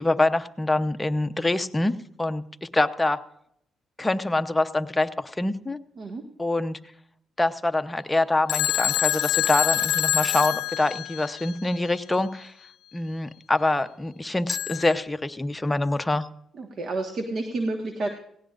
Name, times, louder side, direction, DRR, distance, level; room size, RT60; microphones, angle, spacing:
voice 1, 0.0-3.2 4.0-5.8 6.4-6.8 7.4-12.5 12.9-16.3, left 2 dB, 15° left, 9 dB, 0.8 m, -25 dB
Telephone, 8.5-11.5 14.5-14.9, left 11 dB, 75° left, 0.6 m, -25 dB
voice 2, 16.6-18.1, right 2 dB, 50° right, 4 dB, 1.5 m, -30 dB
18.0 x 17.5 x 2.5 m, 0.72 s
cardioid pair, 90°, 0 cm